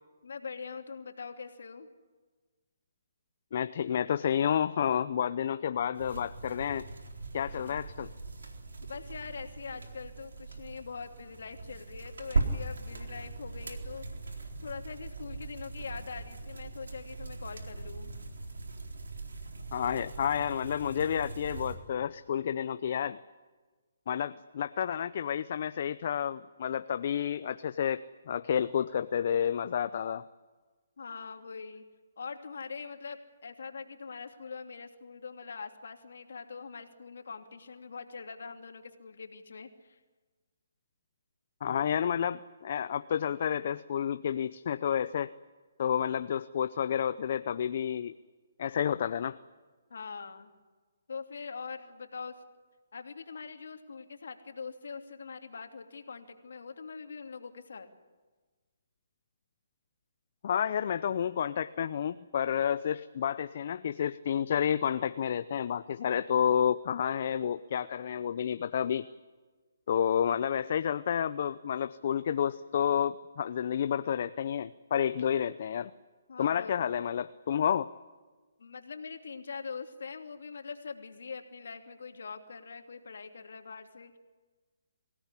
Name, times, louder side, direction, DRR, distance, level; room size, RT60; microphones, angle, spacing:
voice 1, 0.2-1.9 7.5-7.8 8.8-14.1 14.6-18.1 24.3-24.4 31.0-31.8 32.2-40.0 49.9-50.5 51.1-52.4 52.9-57.9 76.3-76.9 78.6-84.2, left 5 dB, 75° left, 5 dB, 2.8 m, -43 dB
voice 2, 3.5-6.9 7.3-8.1 19.7-23.2 24.1-30.3 41.6-45.3 45.8-48.1 48.6-49.4 60.4-69.1 69.9-75.9 76.4-77.9, left 8 dB, 50° left, 13 dB, 0.7 m, -30 dB
sound 1, 6.0-21.8, right 3 dB, 85° right, 4.0 m, -39 dB
24.5 x 17.5 x 9.9 m, 1.3 s
hypercardioid pair, 150°, 0 cm